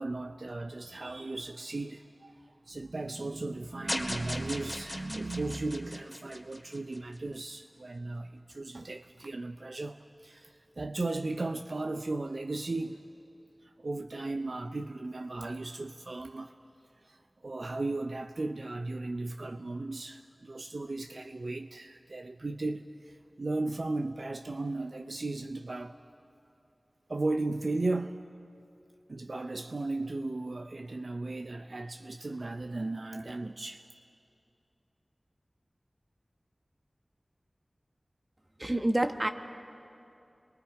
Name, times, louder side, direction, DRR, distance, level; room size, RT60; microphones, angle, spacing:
voice 1, 0.0-13.1 13.6-16.5 17.0-26.0 27.1-28.2 29.1-33.8, right 2 dB, 70° right, 0.5 m, -36 dB
sound 1, 3.9-7.2, left 1 dB, 30° left, 2.0 m, -38 dB
voice 2, 38.6-39.3, right 1 dB, 30° right, 1.1 m, -27 dB
30.0 x 23.0 x 4.7 m
wide cardioid pair, 55°, 0 cm